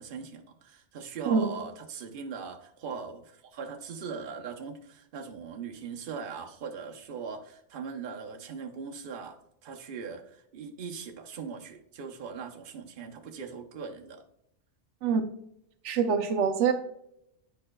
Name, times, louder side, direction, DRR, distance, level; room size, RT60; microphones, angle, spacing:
voice 1, 0.0-14.2, right 5 dB, 55° right, 3 dB, 0.9 m, -40 dB
voice 2, 15.8-16.7, right 6 dB, 90° right, 8 dB, 1.0 m, -25 dB
8.6 x 5.4 x 2.2 m, 0.76 s
omnidirectional pair, 1.2 m